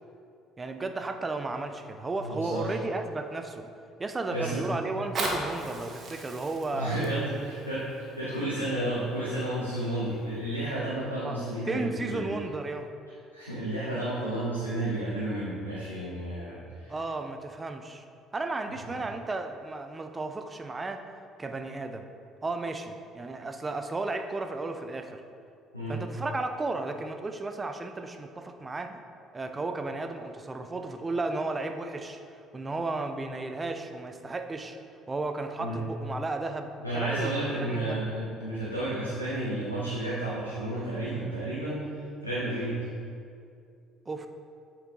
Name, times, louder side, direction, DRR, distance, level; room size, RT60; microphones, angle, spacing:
voice 1, 0.6-3.7 4.0-7.0 11.2-12.9 16.9-18.0 18.3-21.0 21.4-22.1 22.4-25.2 25.9-29.0 29.3-32.2 32.5-34.8 35.1-37.4 37.7-38.0 44.1-44.3, right 3 dB, 25° right, 7 dB, 0.6 m, -34 dB
voice 2, 2.2-2.8 4.3-4.7 6.7-12.3 13.3-16.9 25.7-26.0 35.6-35.8 36.8-42.8, right 1 dB, 90° left, -10 dB, 1.1 m, -32 dB
Fire, 4.9-9.9 10.5-10.6, right 2 dB, 40° right, 1.3 m, -37 dB
8.9 x 4.7 x 3.8 m, 2.4 s
figure-of-eight pair, 50°, 0 cm